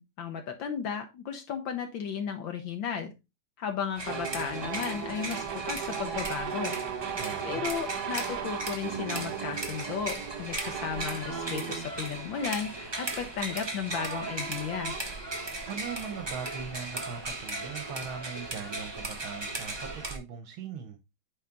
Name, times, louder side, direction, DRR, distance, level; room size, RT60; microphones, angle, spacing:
voice 1, 0.0-3.1 3.6-6.8 7.0-7.1 7.4-14.9, left 7 dB, 70° left, 1.6 m, -34 dB
sound 1, 4.0-20.2, right 2 dB, 20° right, 0.8 m, -37 dB
sound 2, 4.0-13.3 13.9-16.6, right 7 dB, 60° right, 1.4 m, -38 dB
voice 2, 7.2-7.7 15.7-21.0, right 6 dB, 80° right, 1.7 m, -40 dB
9.2 x 3.5 x 3.8 m
omnidirectional pair, 2.2 m